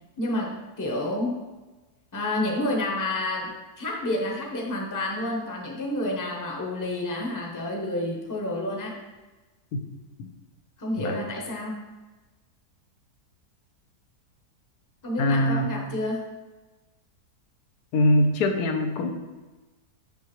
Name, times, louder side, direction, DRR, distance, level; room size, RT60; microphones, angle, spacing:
voice 1, 0.2-1.3 2.1-9.0 10.8-11.8 15.0-16.3, left 1 dB, 15° left, -1 dB, 0.7 m, -29 dB
voice 2, 15.2-15.7 17.9-19.1, left 1 dB, 80° left, 5 dB, 1.2 m, -23 dB
6.4 x 5.5 x 3.1 m, 1.2 s
omnidirectional pair, 1.7 m